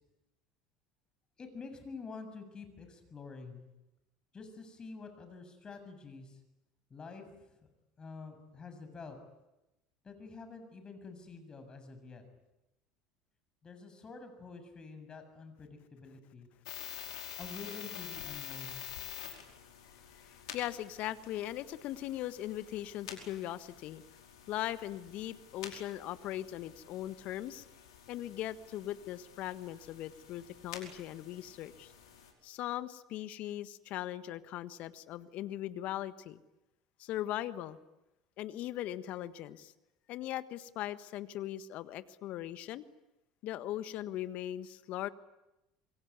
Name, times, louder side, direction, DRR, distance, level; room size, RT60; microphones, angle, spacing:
voice 1, 1.4-3.6 4.3-6.4 6.9-7.5 8.0-9.2 10.0-12.2 13.6-16.5 17.4-18.8, left 4 dB, 30° left, 8 dB, 7.2 m, -48 dB
sound 1, 16.7-32.3, left 9 dB, 80° left, 5.1 m, -48 dB
voice 2, 20.1-24.0 24.5-27.6 28.1-31.9 32.4-36.4 37.0-37.8 38.4-39.7 40.1-42.9 43.4-45.1, left 13 dB, 60° left, 13 dB, 1.5 m, -39 dB
27.0 x 23.0 x 9.6 m, 0.94 s
hypercardioid pair, 75°, 3 cm